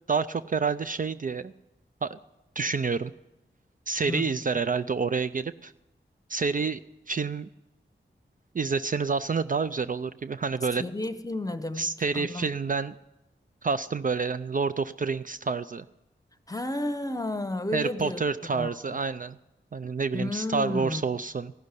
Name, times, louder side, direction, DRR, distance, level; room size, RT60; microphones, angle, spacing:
voice 1, 0.1-1.5 2.0-2.2 2.6-3.1 3.9-5.7 6.3-6.8 7.1-7.5 8.5-10.8 11.8-13.0 13.6-15.8 17.7-19.4 19.7-21.5, right 5 dB, 40° right, 0.4 m, -28 dB
voice 2, 10.8-12.5 16.5-18.2 18.5-19.0 20.1-21.0, left 2 dB, 15° left, 1.0 m, -32 dB
15.0 x 6.5 x 9.8 m
cardioid pair, 40°, 20 cm